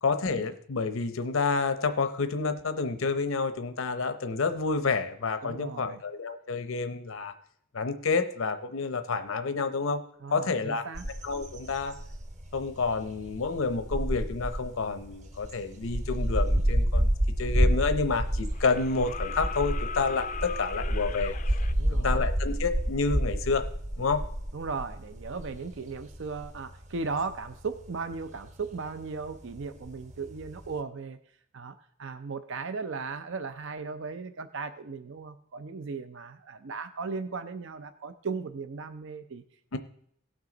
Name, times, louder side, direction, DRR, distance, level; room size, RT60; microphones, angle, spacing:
voice 1, 0.0-7.3 7.7-10.0 10.3-10.8 11.2-12.0 12.5-17.1 17.4-21.3 21.9-23.7 24.0-24.2 39.7-39.8, left 4 dB, 80° left, 10 dB, 0.7 m, -29 dB
voice 2, 5.4-6.0 10.2-11.1 21.8-22.2 24.5-31.2 31.5-39.4, right 4 dB, 65° right, 10 dB, 0.5 m, -37 dB
sound 1, 10.9-30.7, right 1 dB, 35° right, 1.0 m, -30 dB
sound 2, 17.4-17.5 18.5-21.7 23.5-23.6, left 7 dB, 40° left, 0.4 m, -39 dB
18.0 x 6.2 x 3.9 m, 0.67 s
head